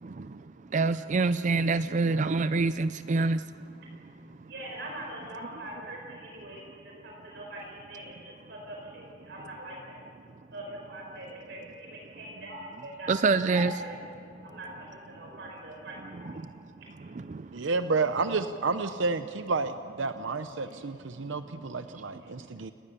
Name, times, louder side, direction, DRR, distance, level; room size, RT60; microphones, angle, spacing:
voice 1, 0.0-0.4 0.7-3.4 13.1-13.7 16.2-16.5 17.0-17.5, right 3 dB, 40° right, 13 dB, 0.4 m, -26 dB
voice 2, 4.5-10.0 10.5-13.2 13.5-14.0 14.4-16.3, right 1 dB, 65° right, -1 dB, 4.8 m, -42 dB
voice 3, 17.5-22.7, right 4 dB, 85° right, 10 dB, 0.8 m, -30 dB
29.0 x 19.0 x 6.9 m, 2.6 s
head